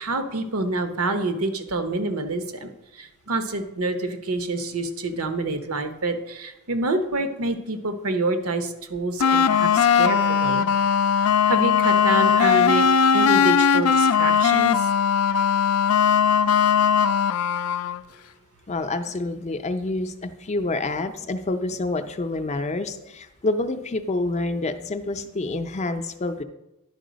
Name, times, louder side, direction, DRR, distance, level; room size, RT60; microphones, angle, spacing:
voice 1, 0.0-10.7 11.5-12.9 13.1-14.9, right 2 dB, 85° right, 8 dB, 0.9 m, -27 dB
sound 1, 9.2-18.0, left 7 dB, 80° left, 0.4 m, -19 dB
voice 2, 18.7-26.4, left 2 dB, 30° left, 9 dB, 0.5 m, -27 dB
10.5 x 4.7 x 5.1 m, 0.94 s
head